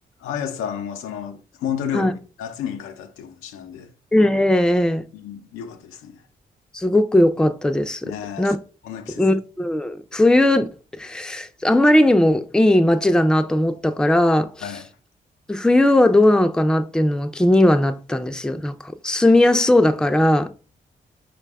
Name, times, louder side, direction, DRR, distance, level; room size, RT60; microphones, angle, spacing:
voice 1, 0.2-3.9 5.1-6.2 8.0-8.6 8.8-9.2 14.6-14.9, left 8 dB, 85° left, 0.5 m, -31 dB
voice 2, 4.1-5.0 6.7-8.0 8.4-8.6 9.2-10.7 11.0-14.5 15.5-18.8 19.0-20.5, left 1 dB, 5° left, 0.4 m, -18 dB
4.5 x 2.2 x 3.4 m
supercardioid pair, 45°, 21 cm